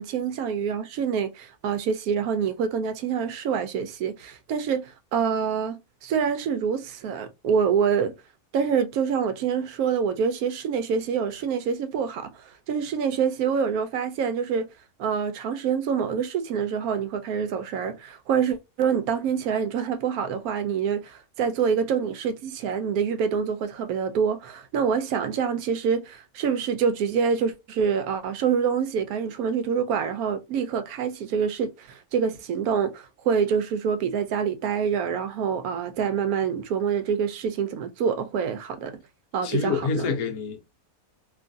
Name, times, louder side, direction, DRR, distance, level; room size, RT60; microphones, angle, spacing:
voice 1, 0.0-8.1 8.5-14.7 15.0-38.9 39.3-40.1, right 7 dB, 80° right, 1.0 m, -26 dB
voice 2, 39.4-40.6, left 5 dB, 85° left, 1.2 m, -27 dB
3.0 x 2.4 x 2.5 m
omnidirectional pair, 1.5 m